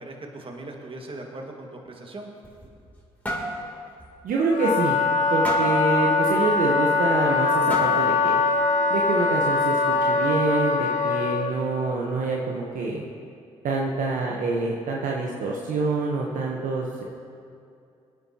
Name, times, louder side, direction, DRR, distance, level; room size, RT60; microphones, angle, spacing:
voice 1, 0.0-2.3, right 2 dB, 35° right, 1 dB, 1.8 m, -39 dB
sound 1, 2.2-3.0 3.3-3.6 4.0-4.1 4.5-4.6 5.4-5.8 7.0-7.1 7.7-8.2, equal, 10° left, 3.0 m, -31 dB
voice 2, 4.2-5.0 5.3-8.4 8.9-13.0 13.6-17.0, right 3 dB, 65° right, -1 dB, 1.1 m, -26 dB
Wind instrument woodwind instrument, 4.5-11.5, left 4 dB, 55° left, 1.1 m, -22 dB
18.5 x 9.3 x 2.9 m, 2.5 s
hypercardioid pair, 45°, 15 cm